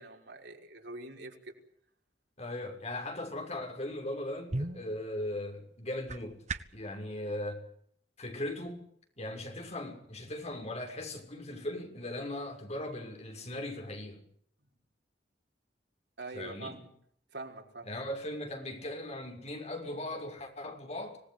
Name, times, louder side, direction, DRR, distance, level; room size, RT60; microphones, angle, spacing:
voice 1, 0.0-1.5 16.2-16.9 17.3-17.9, right 2 dB, 75° right, 5.6 m, -44 dB
voice 2, 2.4-6.4 6.7-7.6 8.2-8.8 9.2-14.2 16.3-16.8 17.8-21.2, left 1 dB, 40° left, 6.4 m, -38 dB
sound 1, 4.0-6.9, right 2 dB, 40° right, 1.4 m, -40 dB
26.0 x 19.0 x 8.3 m
head